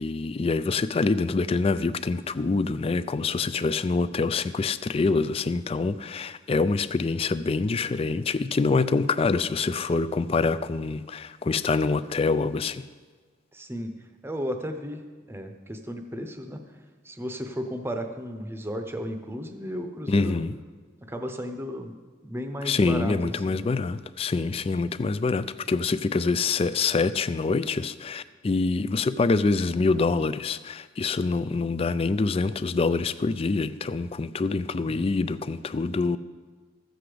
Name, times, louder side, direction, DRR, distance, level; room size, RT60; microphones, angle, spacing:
voice 1, 0.0-12.8 20.1-20.6 22.7-36.2, left 4 dB, 30° left, 0.3 m, -25 dB
voice 2, 13.5-13.9 14.2-16.6 17.0-20.4 21.1-21.9 22.2-23.7 34.9-35.0, equal, 10° right, 0.8 m, -34 dB
14.0 x 7.8 x 5.0 m
head